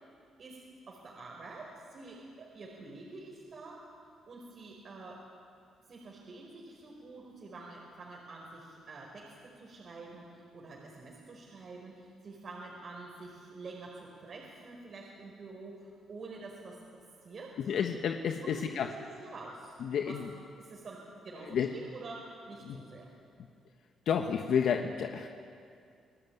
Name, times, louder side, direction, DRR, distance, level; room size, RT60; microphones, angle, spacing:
voice 1, 0.9-3.7 4.3-5.2 5.9-17.5 18.4-18.9 19.2-20.2 20.6-23.1, right 3 dB, 50° right, -2 dB, 4.8 m, -47 dB
voice 2, 17.6-18.9 19.8-20.3 21.4-21.7 22.6-22.8 24.0-25.3, left 7 dB, 70° left, 4 dB, 1.3 m, -31 dB
26.5 x 17.0 x 9.4 m, 2.4 s
cardioid pair, 90°, 0 cm